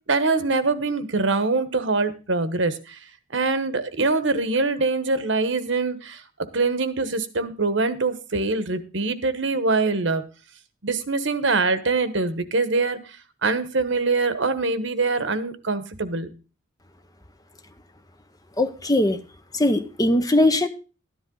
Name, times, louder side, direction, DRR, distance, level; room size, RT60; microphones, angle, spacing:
voice 1, 0.1-3.0 3.3-6.2 6.5-10.2 10.8-13.0 13.4-16.3, right 3 dB, 65° right, 12 dB, 1.2 m, -23 dB
voice 2, 18.6-19.2 19.5-20.7, left 1 dB, 20° left, 9 dB, 0.9 m, -20 dB
13.0 x 10.5 x 3.9 m, 0.34 s
head